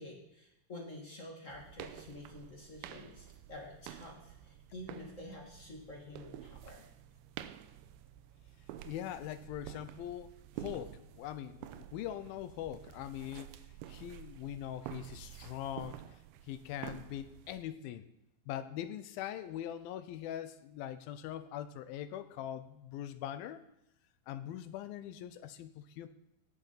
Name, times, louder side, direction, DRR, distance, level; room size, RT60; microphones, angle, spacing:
voice 1, 0.0-6.9, left 1 dB, 35° left, 0 dB, 1.2 m, -49 dB
sound 1, 1.5-17.7, right 12 dB, 85° right, 2.7 m, -50 dB
voice 2, 8.9-13.5 13.9-16.0 16.4-18.0 18.5-23.6 24.3-26.1, left 11 dB, 80° left, 12 dB, 2.4 m, -42 dB
17.5 x 6.6 x 5.7 m, 0.86 s
omnidirectional pair, 4.4 m